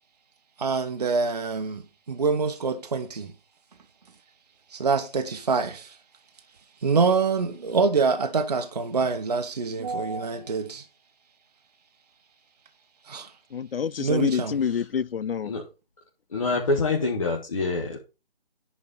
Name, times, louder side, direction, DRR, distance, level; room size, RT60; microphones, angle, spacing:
voice 1, 0.6-1.8 2.1-3.3 4.7-5.9 6.8-10.8 13.1-13.3 14.0-14.5, right 4 dB, 45° right, 1.0 m, -25 dB
voice 2, 13.5-15.5, left 7 dB, 70° left, 0.4 m, -27 dB
voice 3, 16.3-18.0, left 3 dB, 35° left, 1.7 m, -26 dB
10.5 x 4.6 x 5.5 m
figure-of-eight pair, 155°, 30 cm